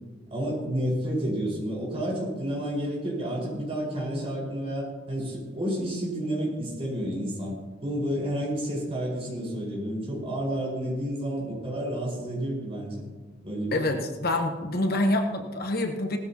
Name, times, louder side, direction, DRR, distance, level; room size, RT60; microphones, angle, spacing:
voice 1, 0.3-7.5 7.8-13.0 13.4-13.8, equal, 30° right, -4 dB, 5.1 m, -30 dB
voice 2, 13.7-16.2, left 1 dB, 50° left, 4 dB, 1.0 m, -26 dB
18.0 x 13.5 x 3.0 m, 1.3 s
head